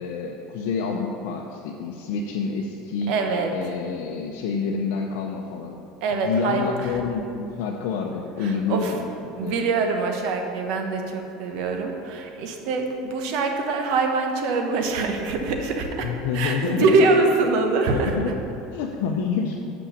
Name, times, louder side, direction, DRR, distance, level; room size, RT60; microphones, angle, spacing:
voice 1, 0.0-3.2 3.5-5.8 6.1-9.1 9.4-9.6 16.0-17.3 17.9-18.4 18.7-19.6, left 5 dB, 75° left, 0 dB, 0.6 m, -28 dB
voice 2, 3.1-3.5 6.0-6.9 8.4-8.9 9.3-16.1 16.3-18.1, right 3 dB, 65° right, 3 dB, 1.1 m, -24 dB
6.2 x 5.7 x 7.0 m, 2.7 s
supercardioid pair, 105°, 0 cm